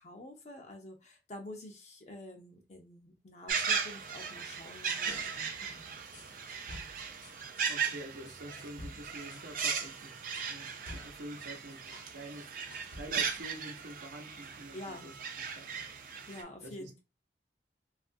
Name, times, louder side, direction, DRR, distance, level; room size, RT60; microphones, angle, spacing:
voice 1, 0.0-5.8 14.7-15.1 16.3-17.0, left 1 dB, 40° left, 0.5 m, -48 dB
sound 1, 3.5-16.4, right 6 dB, 50° right, 0.4 m, -37 dB
sound 2, 5.1-7.7 8.3-12.1 12.4-13.4, left 1 dB, 80° left, 0.8 m, -51 dB
voice 2, 7.7-10.2 10.4-12.5 12.9-15.2 15.5-15.8 16.6-16.9, right 1 dB, 80° right, 0.8 m, -47 dB
2.9 x 2.4 x 2.6 m
head